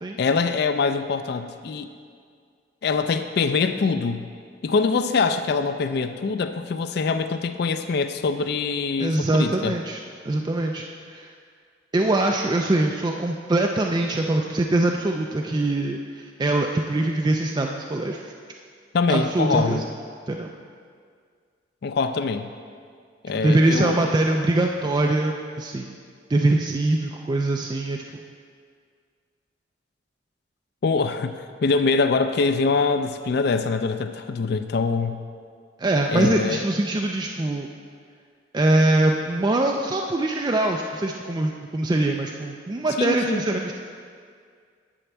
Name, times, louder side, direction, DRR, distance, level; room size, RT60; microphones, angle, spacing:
voice 1, 0.2-1.9 2.8-4.3 4.6-9.8 18.9-19.8 21.8-22.5 23.2-23.9 30.8-31.4 31.6-35.2 36.1-36.6 43.0-43.4, left 4 dB, 55° left, 9 dB, 0.4 m, -24 dB
voice 2, 9.0-10.0 10.2-11.3 11.9-18.3 19.1-19.8 20.3-20.5 23.4-25.9 26.3-28.2 35.8-37.7 38.5-43.7, right 2 dB, 20° right, 2 dB, 0.3 m, -23 dB
10.0 x 4.4 x 7.1 m, 2.1 s
head